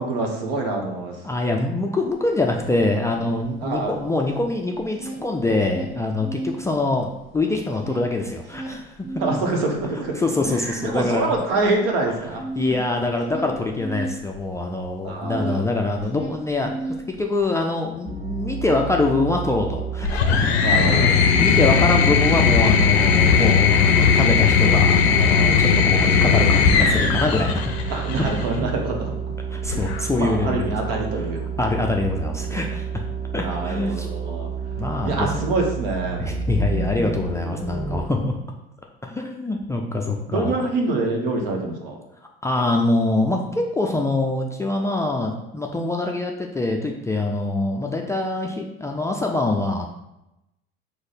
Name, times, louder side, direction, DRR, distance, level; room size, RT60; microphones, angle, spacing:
voice 1, 0.0-1.2 3.6-3.9 9.2-10.2 10.5-12.4 15.0-15.6 20.6-21.1 27.9-29.1 30.2-31.4 33.4-34.5 35.0-36.2 40.3-42.0, right 2 dB, 70° right, 2 dB, 1.0 m, -25 dB
voice 2, 1.2-7.1 7.3-9.1 10.2-11.3 12.6-16.8 17.1-27.7 29.5-30.7 31.6-33.0 33.3-34.1 34.8-35.4 36.2-38.3 39.0-40.5 42.4-49.9, left 2 dB, 10° left, 1 dB, 0.3 m, -24 dB
sound 1, 2.1-2.2 2.5-4.5 4.8-6.6 7.0-15.7 15.9-17.5, right 2 dB, 50° right, 1.2 m, -34 dB
sound 2, 18.1-38.0, right 6 dB, 20° right, 0.8 m, -30 dB
sound 3, 20.0-28.4 29.6-30.3, left 6 dB, 80° left, 0.5 m, -18 dB
4.7 x 2.1 x 4.0 m, 0.90 s
hypercardioid pair, 75°, 31 cm